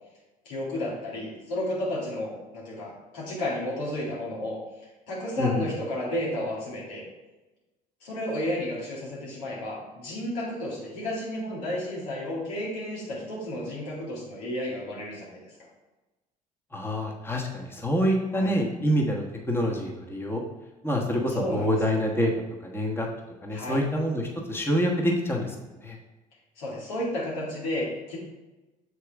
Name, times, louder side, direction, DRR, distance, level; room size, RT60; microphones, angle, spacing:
voice 1, 0.4-4.6 5.1-7.0 8.0-15.5 18.3-18.5 21.3-21.8 23.5-23.8 26.6-28.2, left 1 dB, 80° left, -6 dB, 2.2 m, -32 dB
voice 2, 16.7-20.4 20.8-22.3 22.6-23.1 23.4-25.5 25.8-26.0, equal, 10° left, -1 dB, 1.2 m, -26 dB
6.8 x 4.7 x 3.5 m, 1.1 s
hypercardioid pair, 60°, 20 cm